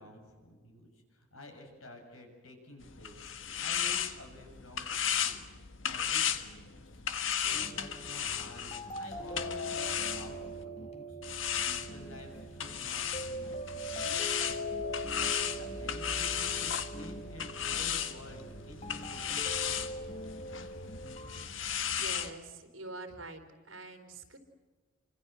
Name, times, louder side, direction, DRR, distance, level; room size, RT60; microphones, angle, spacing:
voice 1, 0.0-3.3 3.6-7.0 7.4-11.2 11.6-14.9 15.3-20.2, left 1 dB, 90° left, 4 dB, 7.2 m, -51 dB
sound 1, 2.8-10.6 11.2-22.3, left 8 dB, 65° left, 1.6 m, -35 dB
sound 2, 7.4-21.4, equal, 30° left, 1.7 m, -42 dB
voice 2, 21.8-23.4 23.7-24.4, right 2 dB, 70° right, 7 dB, 4.1 m, -45 dB
28.0 x 26.0 x 7.7 m, 1.4 s
head